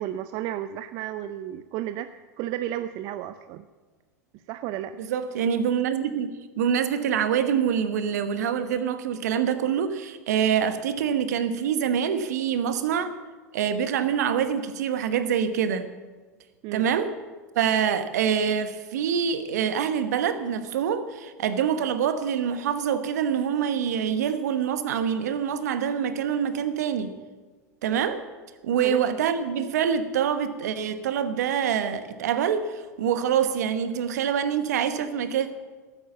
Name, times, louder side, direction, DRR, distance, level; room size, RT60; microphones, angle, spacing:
voice 1, 0.0-3.6 4.3-4.9 16.6-16.9 28.8-29.0, right 12 dB, 50° right, 12 dB, 0.5 m, -33 dB
voice 2, 5.0-6.3 6.6-13.1 13.5-15.8 16.7-17.1 17.5-27.1 27.8-28.2 28.6-35.5, right 8 dB, 75° right, 11 dB, 1.1 m, -25 dB
13.0 x 9.2 x 7.1 m, 1.4 s
hypercardioid pair, 85°, 9 cm